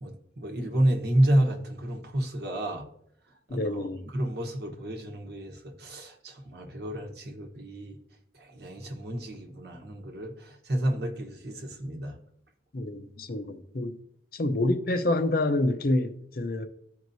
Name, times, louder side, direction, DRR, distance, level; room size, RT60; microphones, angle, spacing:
voice 1, 0.0-2.8 3.5-8.0 8.3-12.2, right 1 dB, 60° right, 1.0 m, -30 dB
voice 2, 3.5-4.0 12.7-14.0 14.3-16.7, left 2 dB, 50° left, 0.6 m, -27 dB
13.5 x 4.6 x 2.7 m
head